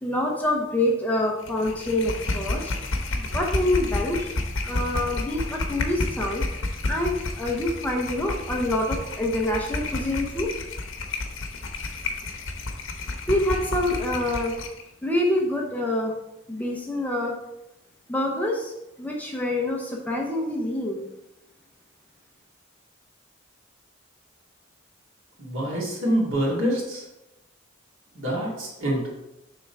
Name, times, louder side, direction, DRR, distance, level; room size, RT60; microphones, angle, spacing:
voice 1, 0.0-2.7 3.2-4.4 4.6-6.5 6.9-10.5 13.3-14.5 15.0-16.2 16.5-17.4 18.1-21.0, left 1 dB, 10° left, -1 dB, 0.8 m, -26 dB
sound 1, 1.4-14.8, left 2 dB, 75° left, 0.9 m, -31 dB
voice 2, 25.4-27.0 28.1-29.1, right 1 dB, 75° right, -4 dB, 2.5 m, -26 dB
6.5 x 3.8 x 5.4 m, 0.92 s
head